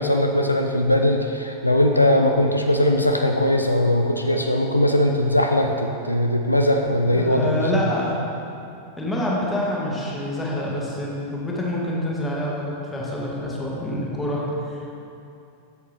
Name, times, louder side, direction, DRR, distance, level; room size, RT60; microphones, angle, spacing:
voice 1, 0.0-7.8, left 1 dB, 85° left, 3 dB, 0.4 m, -20 dB
voice 2, 7.0-8.3 9.0-14.9, left 1 dB, 10° left, -4 dB, 1.5 m, -26 dB
8.1 x 7.2 x 3.3 m, 2.7 s
figure-of-eight pair, 90°, 0 cm